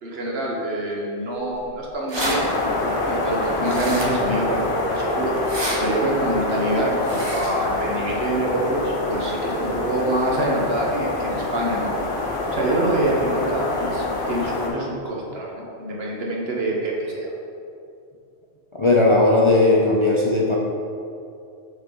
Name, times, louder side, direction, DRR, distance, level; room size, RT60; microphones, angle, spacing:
voice 1, 0.0-2.4 3.1-5.3 5.8-11.9 12.3-17.3, right 1 dB, 70° right, -3 dB, 1.3 m, -25 dB
sound 1, 1.6-1.7 1.9-2.4 3.6-4.3 5.4-5.8 7.0-7.5, right 1 dB, 25° right, 0.8 m, -29 dB
sound 2, 2.1-14.7, left 2 dB, 55° left, 1.3 m, -26 dB
voice 2, 18.8-20.6, left 2 dB, 35° left, -4 dB, 0.6 m, -17 dB
6.7 x 4.6 x 3.7 m, 2.5 s
omnidirectional pair, 1.1 m